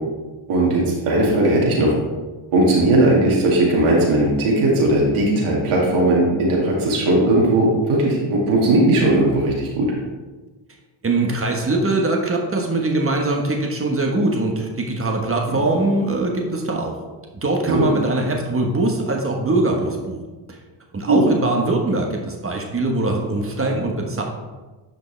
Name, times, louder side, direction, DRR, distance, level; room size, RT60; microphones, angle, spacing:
voice 1, 0.5-1.9 2.5-9.9 17.7-17.9 21.1-21.2, right 1 dB, 80° right, -3 dB, 2.3 m, -17 dB
voice 2, 11.0-16.9 17.3-20.2 20.5-20.6 20.9-24.2, right 2 dB, 25° right, 1 dB, 1.3 m, -22 dB
10.0 x 5.1 x 3.4 m, 1.2 s
cardioid pair, 95°, 49 cm